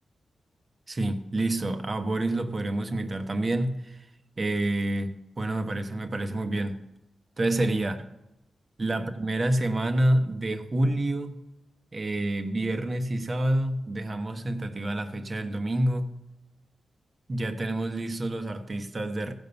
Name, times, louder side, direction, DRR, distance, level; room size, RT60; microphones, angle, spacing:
voice 1, 0.9-4.0 4.4-6.8 7.4-8.0 8.8-11.3 11.9-16.1 17.3-19.3, right 1 dB, 40° right, 6 dB, 1.1 m, -28 dB
15.5 x 5.4 x 6.9 m, 0.92 s
cardioid pair, 70°, 0 cm